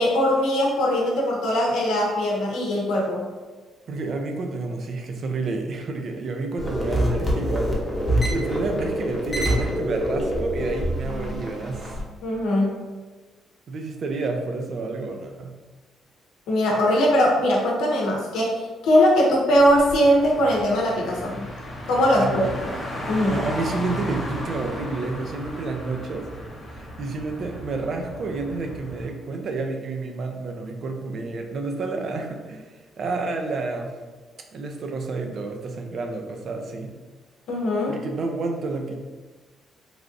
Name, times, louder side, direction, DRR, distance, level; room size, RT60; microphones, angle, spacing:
voice 1, 0.0-3.3 12.2-12.8 16.5-18.6 18.8-21.4 21.9-22.7 23.1-23.4 37.5-37.9, equal, 85° left, -2 dB, 0.7 m, -21 dB
voice 2, 3.9-12.0 13.7-15.5 22.1-22.5 23.3-26.3 26.7-33.9 34.5-36.9 37.9-39.0, right 3 dB, 55° right, 4 dB, 0.4 m, -30 dB
sound 1, 6.6-12.0, equal, 10° left, 0.7 m, -25 dB
Car, 19.5-29.1, equal, 45° left, 1.0 m, -35 dB
3.2 x 2.4 x 2.5 m, 1.3 s
cardioid pair, 90°, 0 cm